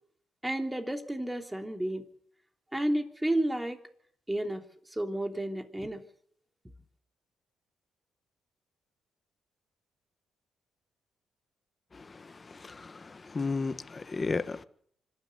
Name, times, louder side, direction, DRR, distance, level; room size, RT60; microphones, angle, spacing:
voice 1, 0.4-2.0 2.7-3.8 4.3-4.6 4.9-6.0, right 1 dB, 10° right, 3.2 m, -31 dB
voice 2, 11.9-14.6, left 4 dB, 30° left, 1.5 m, -34 dB
25.5 x 13.0 x 8.2 m
cardioid pair, 90°, 0 cm